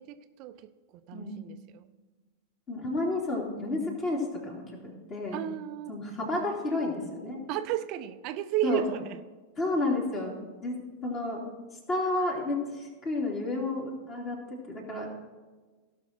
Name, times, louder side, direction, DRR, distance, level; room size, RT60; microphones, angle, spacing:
voice 1, 0.0-1.9 5.3-6.0 7.5-9.2, right 13 dB, 40° right, 11 dB, 0.5 m, -34 dB
voice 2, 1.1-1.5 2.7-5.4 5.9-7.4 8.6-8.8 9.6-10.4 10.6-10.8 11.0-11.4 11.9-15.1, left 2 dB, 30° left, -1 dB, 3.0 m, -31 dB
16.5 x 6.1 x 4.5 m, 1.3 s
figure-of-eight pair, 90°, 0 cm